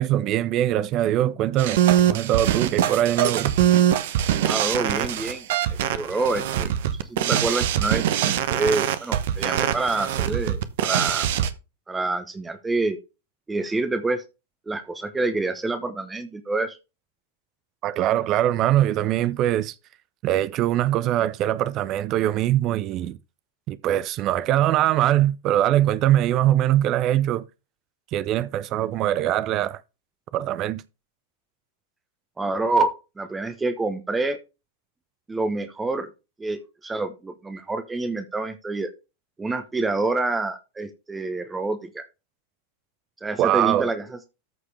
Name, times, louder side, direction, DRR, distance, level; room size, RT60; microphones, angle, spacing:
voice 1, 0.0-1.8 2.1-3.5 17.8-19.7 20.2-23.2 23.7-27.4 28.1-29.8 30.3-30.8 43.4-43.9, right 13 dB, 35° right, 0.6 m, -22 dB
sound 1, 1.6-11.5, right 11 dB, 55° right, 1.0 m, -23 dB
voice 2, 4.4-5.4 5.7-6.7 7.1-11.3 11.9-13.0 13.5-14.2 14.7-16.8 32.4-34.4 35.3-36.1 36.4-38.9 39.4-42.0 43.2-44.2, right 3 dB, 10° right, 1.1 m, -27 dB
14.0 x 4.8 x 3.4 m
figure-of-eight pair, 90°, 0 cm